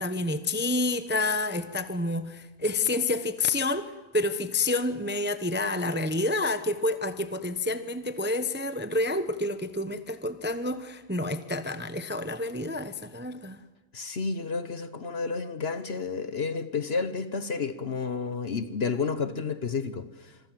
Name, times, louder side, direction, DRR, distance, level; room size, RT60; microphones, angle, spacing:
voice 1, 0.0-13.6, left 2 dB, 10° right, 0.8 m, -29 dB
voice 2, 13.9-20.3, left 5 dB, 45° left, 1.2 m, -31 dB
26.0 x 24.0 x 7.6 m
omnidirectional pair, 1.6 m